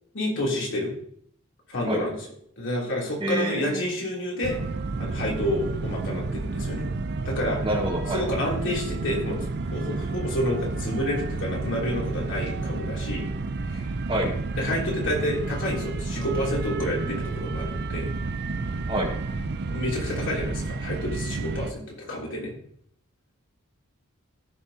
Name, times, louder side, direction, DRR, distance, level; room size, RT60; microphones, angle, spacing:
voice 1, 0.1-0.9 1.7-2.1 2.6-4.6 5.0-6.9 7.2-7.6 8.1-9.4 9.7-13.3 13.6-13.9 14.6-18.1 19.7-22.5, left 1 dB, 60° left, -3 dB, 3.1 m, -29 dB
voice 2, 3.2-3.8 7.6-8.2 14.1-14.3 18.9-19.1, right 1 dB, 25° right, 0 dB, 1.5 m, -26 dB
sound 1, 4.4-21.7, right 3 dB, 50° right, 0.5 m, -31 dB
15.5 x 6.0 x 2.8 m, 0.66 s
head